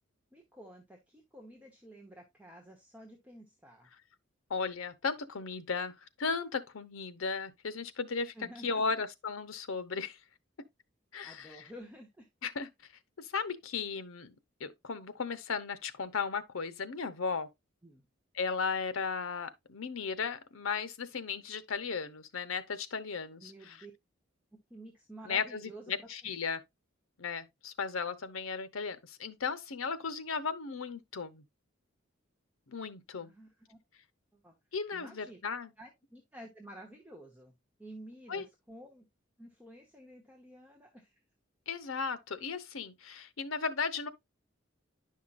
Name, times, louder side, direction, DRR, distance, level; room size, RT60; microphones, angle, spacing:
voice 1, 0.3-3.9 8.3-9.0 11.2-12.3 17.8-18.0 23.4-23.9 24.7-26.1 33.1-33.8 34.3-34.5 34.9-35.4 35.8-37.5 37.8-39.0 39.4-41.2, right 1 dB, 10° right, 1.1 m, -51 dB
voice 2, 4.5-8.3 8.6-10.2 11.1-11.6 12.4-12.7 13.2-14.3 14.6-17.5 18.3-23.8 25.3-26.6 27.2-31.4 32.7-33.3 34.7-35.7 38.3-38.5 41.7-44.1, left 5 dB, 80° left, 0.8 m, -36 dB
10.0 x 5.7 x 2.5 m
head